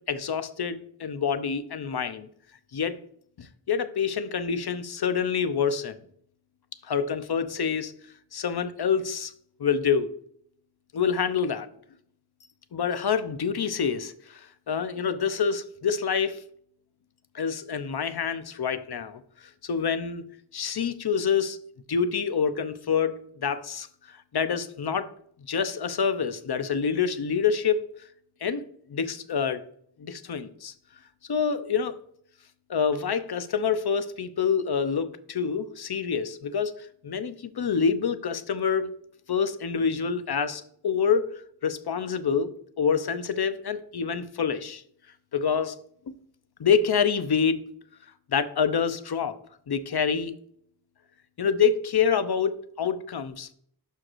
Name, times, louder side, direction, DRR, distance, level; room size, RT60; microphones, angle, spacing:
voice 1, 0.1-2.3 2.7-3.0 3.4-6.0 6.8-7.9 8.3-9.3 9.6-10.1 10.9-11.7 12.7-14.4 14.7-16.4 17.3-19.2 19.6-20.2 20.5-21.6 21.9-25.1 25.5-27.8 28.4-28.6 28.9-29.6 30.0-30.7 31.3-32.0 32.7-38.9 39.3-41.3 41.6-42.5 42.8-44.8 45.3-45.8 46.1-46.2 46.6-47.6 48.3-49.4 49.7-50.3 51.4-53.5, left 6 dB, 60° left, 11 dB, 0.8 m, -27 dB
12.5 x 4.7 x 2.6 m, 0.63 s
wide cardioid pair, 70°, 43 cm